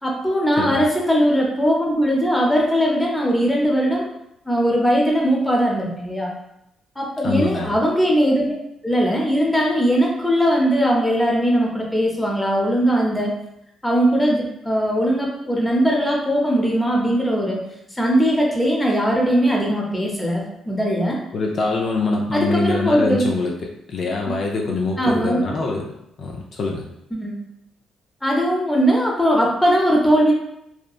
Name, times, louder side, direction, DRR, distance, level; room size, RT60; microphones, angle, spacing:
voice 1, 0.0-4.1 4.5-6.3 7.0-8.6 8.8-13.3 13.8-17.6 17.9-21.2 22.3-23.3 25.0-25.5 27.1-27.4 28.2-30.3, equal, 10° left, -2 dB, 0.6 m, -19 dB
voice 2, 7.2-7.7 21.3-25.9 26.2-26.8, left 3 dB, 55° left, 0 dB, 0.3 m, -24 dB
2.7 x 2.2 x 2.3 m, 0.81 s
cardioid pair, 90°, 0 cm